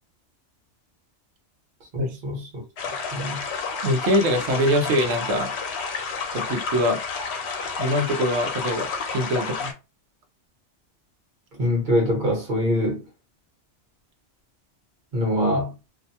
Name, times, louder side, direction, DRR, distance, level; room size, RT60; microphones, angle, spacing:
voice 1, 1.9-2.6 3.1-3.4 11.6-13.1 15.1-15.7, equal, 45° right, 1.2 m, -24 dB
sound 1, 2.8-9.7, left 5 dB, 70° left, 0.9 m, -30 dB
voice 2, 3.8-5.5 6.3-7.0 7.8-9.7, equal, 75° right, 0.9 m, -23 dB
2.6 x 2.1 x 2.7 m
omnidirectional pair, 1.2 m